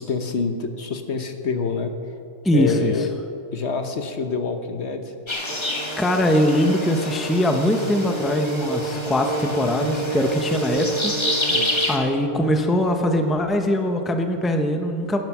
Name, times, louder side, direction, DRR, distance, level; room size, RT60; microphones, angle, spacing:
voice 1, 0.0-1.9 2.5-3.1 3.5-5.1 11.5-11.7, left 4 dB, 60° left, 6 dB, 1.2 m, -26 dB
voice 2, 2.4-2.9 5.6-11.6 11.9-15.2, left 1 dB, ahead, 5 dB, 0.8 m, -22 dB
sound 1, 5.3-12.0, left 1 dB, 20° left, 1.5 m, -29 dB
sound 2, 5.5-13.4, right 3 dB, 75° right, 1.8 m, -31 dB
16.5 x 11.0 x 6.1 m, 2.5 s
omnidirectional pair, 1.3 m